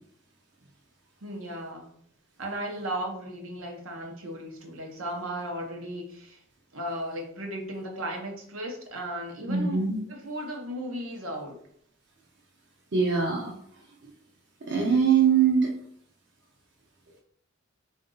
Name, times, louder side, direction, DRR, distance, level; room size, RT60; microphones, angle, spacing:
voice 1, 1.2-1.9 2.4-6.4 6.7-11.6, right 1 dB, 85° right, 1 dB, 1.0 m, -35 dB
voice 2, 9.5-10.0 12.9-13.5 14.7-15.7, right 6 dB, 60° right, -2 dB, 0.7 m, -22 dB
3.7 x 2.7 x 3.9 m, 0.64 s
head